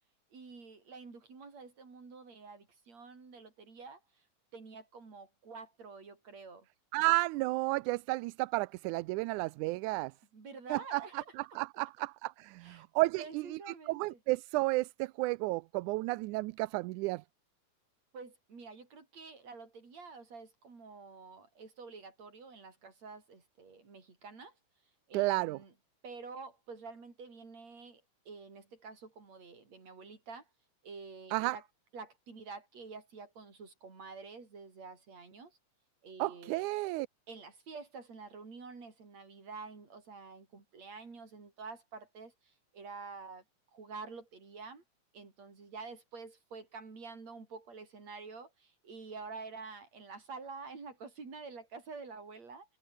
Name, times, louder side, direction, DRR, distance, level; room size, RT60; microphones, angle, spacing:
voice 1, 0.3-4.0 4.5-6.7 10.3-11.3 12.6-12.8 13.1-14.2 18.1-24.5 25.1-25.7 26.0-28.0 28.3-30.5 30.8-31.6 31.9-35.6 36.0-36.7 37.3-43.4 43.7-44.8 45.1-52.8, right 4 dB, 60° right, 6.5 m, -48 dB
voice 2, 6.9-10.1 10.7-17.2 25.1-25.6 31.3-31.6 36.2-37.1, right 21 dB, 85° right, 2.0 m, -32 dB
omnidirectional pair, 3.4 m